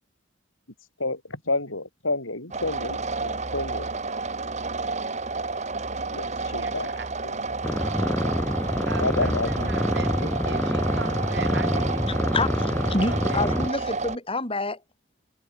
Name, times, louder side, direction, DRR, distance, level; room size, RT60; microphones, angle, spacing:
voice 1, 1.0-3.9 6.1-6.9 7.2-7.4 9.0-9.7, left 2 dB, 75° left, 8.0 m, -30 dB
sound 1, 2.5-14.2, right 3 dB, 35° right, 1.9 m, -30 dB
voice 2, 6.6-7.0 8.9-9.3 9.7-12.3 12.6-13.4, right 3 dB, 55° right, 3.2 m, -39 dB
sound 2, 7.6-13.7, equal, 10° left, 1.1 m, -26 dB
voice 3, 12.3-14.8, left 2 dB, 25° left, 6.0 m, -27 dB
head